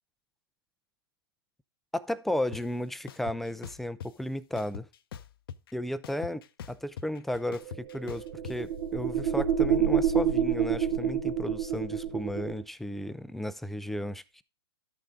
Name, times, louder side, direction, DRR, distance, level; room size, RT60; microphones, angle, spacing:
voice 1, 1.9-4.9 5.7-6.4 6.7-14.4, left 1 dB, ahead, 0.4 m, -34 dB
sound 1, 2.5-2.6 3.1-4.1 4.6-5.7 6.0-8.6, left 8 dB, 65° left, 0.7 m, -42 dB
sound 2, 7.7-12.6, right 8 dB, 60° right, 1.4 m, -28 dB
12.0 x 6.5 x 3.8 m
hypercardioid pair, 120°, 13 cm